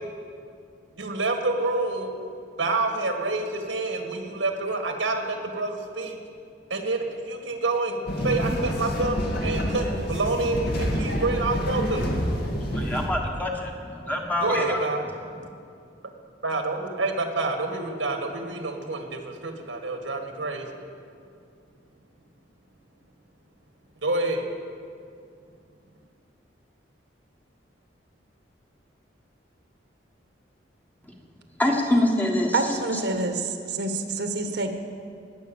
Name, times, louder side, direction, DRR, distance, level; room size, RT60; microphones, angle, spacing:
voice 1, 1.0-2.1 2.6-6.2 6.7-9.2 9.4-12.1 14.4-15.0 16.4-20.7 24.0-24.5, right 2 dB, 85° right, 4 dB, 2.0 m, -27 dB
sound 1, 8.1-13.1, equal, 55° left, 2.1 m, -27 dB
voice 2, 12.5-14.8 31.6-32.6, left 1 dB, 10° left, 0 dB, 1.5 m, -25 dB
voice 3, 32.5-34.7, right 3 dB, 65° right, 5 dB, 1.4 m, -27 dB
19.5 x 8.0 x 7.2 m, 2.4 s
head